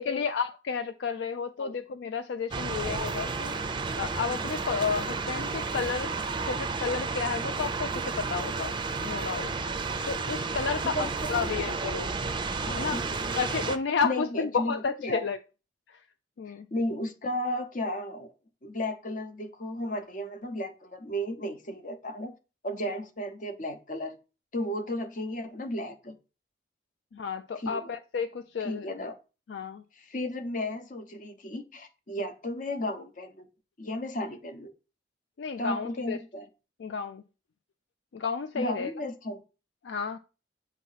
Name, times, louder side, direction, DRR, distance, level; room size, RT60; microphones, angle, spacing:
voice 1, 0.0-3.5 4.0-6.1 6.4-8.7 9.0-9.5 10.1-12.1 12.7-13.0 13.4-15.4 16.4-16.7 27.1-28.9 29.5-29.8 35.4-36.2 36.8-37.2 38.1-38.9 39.8-40.2, left 5 dB, 65° left, 0.4 m, -31 dB
sound 1, 2.5-13.8, right 4 dB, 25° right, 0.5 m, -32 dB
voice 2, 10.8-11.5 12.9-13.1 14.0-15.2 16.7-18.3 18.6-22.4 22.6-24.2 24.5-26.2 27.5-27.9 28.6-29.2 30.0-33.4 33.8-34.7 35.6-36.5 38.5-39.4, left 1 dB, 45° left, 0.8 m, -34 dB
8.2 x 3.0 x 5.5 m
head